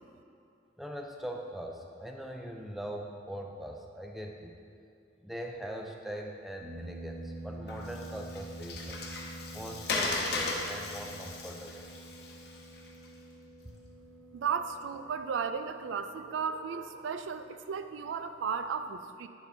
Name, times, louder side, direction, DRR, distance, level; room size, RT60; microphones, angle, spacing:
voice 1, 0.8-4.5 5.2-9.1 9.5-11.9, equal, ahead, 2 dB, 0.4 m, -41 dB
sound 1, 6.6-15.6, right 1 dB, 35° right, 0.9 m, -46 dB
Water, 7.7-13.1, left 3 dB, 60° left, 0.8 m, -37 dB
voice 2, 14.3-19.3, right 6 dB, 85° right, 9 dB, 0.4 m, -34 dB
10.0 x 4.7 x 3.4 m, 2.5 s
head